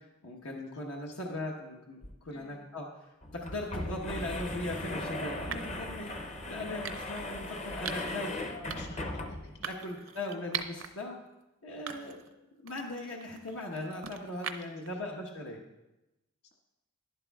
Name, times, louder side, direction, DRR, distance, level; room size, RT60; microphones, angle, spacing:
voice 1, 0.0-8.7 9.7-11.2 11.6-12.2 12.6-15.6, left 1 dB, 80° left, -1 dB, 1.1 m, -39 dB
voice 2, 0.7-1.2 2.3-2.7 8.0-10.2 11.9-12.2 15.0-15.2 16.4-16.5, left 2 dB, 50° left, -1 dB, 1.7 m, -53 dB
sound 1, 2.0-2.1 2.4-2.5 3.2-9.6, left 1 dB, 30° left, 0.6 m, -38 dB
sound 2, 4.2-4.4 5.5-5.8 6.8-7.3 7.9-8.2 8.7-9.0 9.6-10.9 11.3-11.4 11.9-12.3 12.7-14.9, right 8 dB, 65° right, 0.6 m, -41 dB
11.5 x 11.0 x 2.3 m, 0.97 s
head